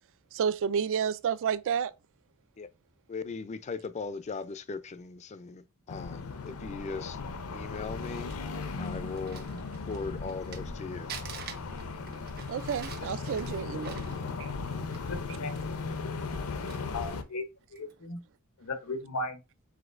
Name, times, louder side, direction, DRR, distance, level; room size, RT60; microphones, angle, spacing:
voice 1, 0.3-1.9 12.5-14.0 14.4-14.5, right 7 dB, 60° right, 0.3 m, -30 dB
voice 2, 3.1-7.2 7.5-8.4 8.8-9.5 9.9-11.1, left 4 dB, 30° left, 0.4 m, -38 dB
sound 1, 5.9-17.2, left 4 dB, 70° left, 0.6 m, -37 dB
Crumpling crinkling, 7.8-10.7 11.1-15.2 15.6-15.7 16.2-17.1 17.7-17.9, right 7 dB, 45° right, 0.8 m, -46 dB
sound 2, 10.5-15.8, right 1 dB, 80° right, 1.3 m, -53 dB
voice 3, 15.0-15.5 16.8-17.4 17.7-18.2 18.6-19.4, left 2 dB, 90° left, 0.9 m, -36 dB
4.9 x 4.0 x 2.5 m
head